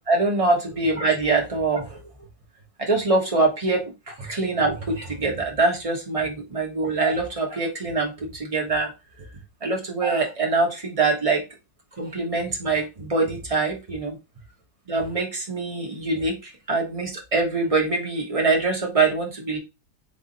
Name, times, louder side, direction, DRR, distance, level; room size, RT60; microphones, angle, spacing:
voice 1, 0.1-2.0 2.8-8.9 9.6-11.4 12.0-14.1 14.9-19.6, right 3 dB, 20° right, 0 dB, 1.0 m, -24 dB
3.5 x 3.3 x 4.0 m, 0.26 s
omnidirectional pair, 2.1 m